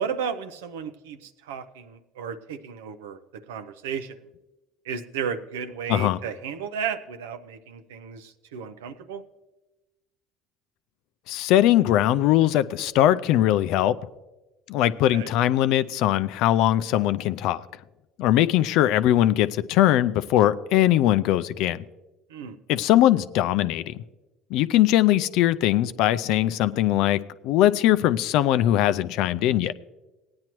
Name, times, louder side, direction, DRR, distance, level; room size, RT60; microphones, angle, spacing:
voice 1, 0.0-4.2 4.8-9.2 15.1-15.3 22.3-22.6, right 7 dB, 85° right, 9 dB, 0.6 m, -34 dB
voice 2, 11.3-14.0 14.7-17.6 18.2-21.8 22.7-24.0 24.5-27.2 27.4-29.7, left 13 dB, 70° left, 14 dB, 0.4 m, -21 dB
17.5 x 9.5 x 3.0 m, 1.1 s
hypercardioid pair, 75°, 0 cm